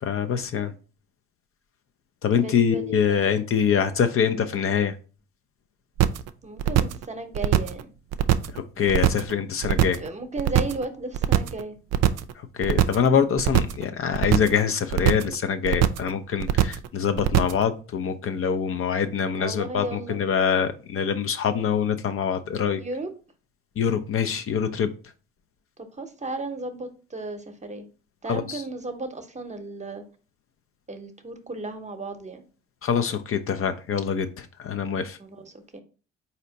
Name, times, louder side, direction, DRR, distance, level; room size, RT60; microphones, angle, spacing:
voice 1, 0.0-0.7 2.2-4.9 8.5-10.0 12.4-22.8 23.8-24.9 28.3-28.6 32.8-35.2, left 7 dB, 45° left, 0.5 m, -24 dB
voice 2, 2.3-3.2 6.4-7.9 10.0-11.8 19.4-20.2 22.8-23.1 25.8-27.9 28.2-30.0 30.9-32.4 35.2-35.8, right 2 dB, 25° right, 0.8 m, -35 dB
sound 1, 6.0-6.3 6.6-7.0 7.3-7.8 8.1-8.6 8.9-9.3 9.6-10.1 10.4-10.8 11.1-11.6 11.9-12.3 12.6-13.1 13.4-13.8 14.1-14.6 14.9-15.3 15.6-16.1 16.4-16.9 17.2-17.6, right 12 dB, 55° right, 0.4 m, -21 dB
4.1 x 2.8 x 3.9 m
hypercardioid pair, 50°, 30 cm